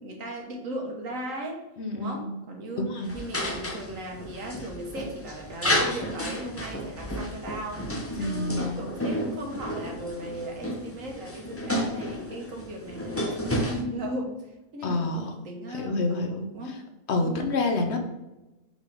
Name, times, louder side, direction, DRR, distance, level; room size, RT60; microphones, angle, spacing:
voice 1, 0.0-1.6 1.9-2.9 3.1-7.8 8.1-16.8 17.2-17.5, right 1 dB, 75° right, 1 dB, 1.5 m, -37 dB
voice 2, 1.8-2.4 2.8-3.1 8.1-8.8 14.8-15.3 15.7-16.5 17.1-18.0, left 2 dB, 60° left, 4 dB, 1.0 m, -28 dB
sound 1, 3.1-13.8, equal, 15° left, 0.4 m, -32 dB
4.9 x 3.7 x 5.2 m, 1.0 s
omnidirectional pair, 1.4 m